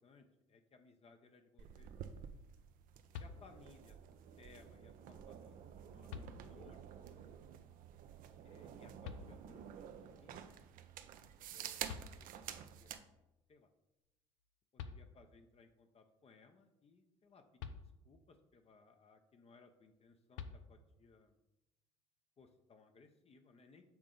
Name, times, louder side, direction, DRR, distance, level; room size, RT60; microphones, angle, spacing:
voice 1, 0.0-2.3 3.2-4.0 4.4-7.3 8.4-10.6 11.5-13.1 13.5-13.7 14.7-21.3 22.4-23.9, left 4 dB, 40° left, 6 dB, 0.7 m, -64 dB
sound 1, 1.6-13.0, right 9 dB, 60° right, 0.5 m, -50 dB
sound 2, 3.1-3.9 5.4-5.5 6.1-6.9 9.0-9.8 11.5-11.6 11.9-12.7 14.4-14.5 14.8-15.5 17.6-18.4 20.3-21.1, left 6 dB, 80° left, 0.5 m, -50 dB
7.0 x 3.7 x 3.9 m, 0.91 s
hypercardioid pair, 55°, 16 cm